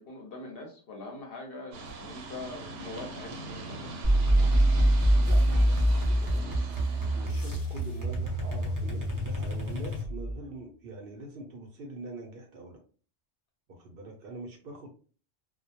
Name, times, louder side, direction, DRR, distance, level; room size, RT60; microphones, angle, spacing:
voice 1, 0.0-3.9, left 2 dB, 60° left, 1 dB, 0.7 m, -43 dB
sound 1, 1.7-7.3, right 2 dB, 80° right, 1.0 m, -41 dB
sound 2, 4.0-10.4, right 1 dB, 20° right, 0.6 m, -25 dB
voice 2, 5.2-6.9 7.1-12.8 13.7-14.9, right 2 dB, 60° right, 2 dB, 0.7 m, -44 dB
sound 3, 7.3-8.3 8.7-8.9, left 1 dB, 30° left, 0.4 m, -51 dB
2.2 x 2.0 x 2.8 m, 0.39 s
omnidirectional pair, 1.2 m